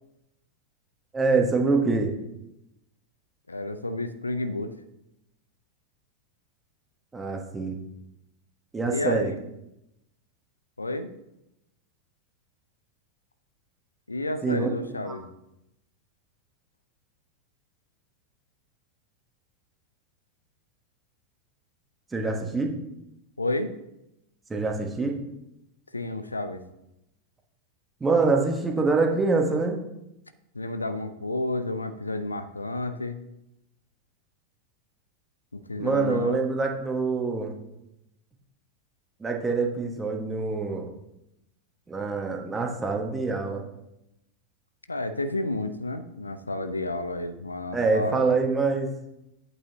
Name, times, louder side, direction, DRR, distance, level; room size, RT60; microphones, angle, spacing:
voice 1, 1.1-2.1 7.1-7.8 8.7-9.3 14.4-14.7 15.1-15.2 22.1-22.7 24.5-25.2 28.0-29.8 35.8-37.5 39.2-40.9 41.9-43.6 47.7-48.9, right 4 dB, 15° right, 2 dB, 1.4 m, -25 dB
voice 2, 3.5-4.7 8.9-9.4 10.8-11.1 14.1-15.3 23.4-23.7 25.9-26.6 30.5-33.2 35.5-36.4 44.9-48.3, left 2 dB, 80° left, 10 dB, 0.6 m, -31 dB
11.0 x 8.5 x 2.8 m, 0.86 s
figure-of-eight pair, 90°, 0 cm